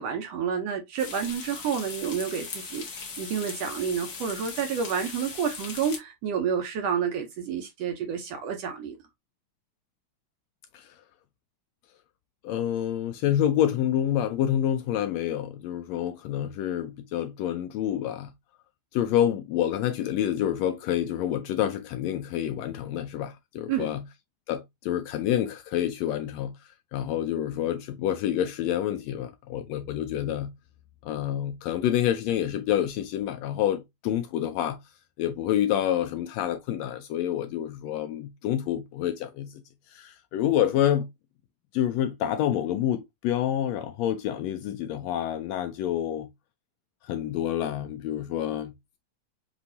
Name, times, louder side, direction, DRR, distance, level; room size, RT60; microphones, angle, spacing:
voice 1, 0.0-9.0 23.7-23.9, right 7 dB, 70° right, 1.7 m, -29 dB
sound 1, 1.0-6.0, left 5 dB, 60° left, 0.9 m, -39 dB
voice 2, 12.4-18.3 18.9-24.0 24.5-26.5 26.9-30.5 31.0-34.8 35.2-39.5 39.9-41.1 41.7-46.3 47.0-48.7, left 11 dB, 80° left, 1.6 m, -28 dB
6.1 x 2.6 x 2.6 m
omnidirectional pair, 3.3 m